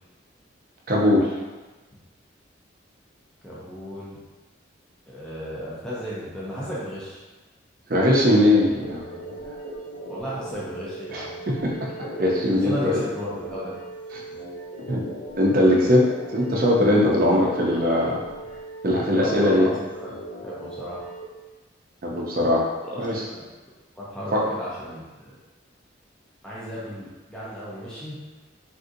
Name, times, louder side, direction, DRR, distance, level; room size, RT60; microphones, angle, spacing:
voice 1, 0.9-1.3 7.9-9.0 11.1-11.2 11.6-11.9 12.2-13.0 14.9-15.0 15.4-18.2 18.8-19.7 22.0-22.7 23.0-23.2 24.3-24.4, left 1 dB, 45° right, -3 dB, 0.5 m, -20 dB
voice 2, 3.4-4.2 5.1-7.2 10.1-11.3 12.6-13.8 17.2-17.5 18.4-18.6 18.9-21.1 22.8-23.4 24.0-25.3 26.4-28.2, equal, 5° left, -9 dB, 0.5 m, -34 dB
sound 1, 8.8-21.2, right 1 dB, 45° left, 0.7 m, -38 dB
3.5 x 2.6 x 2.6 m, 1.2 s
head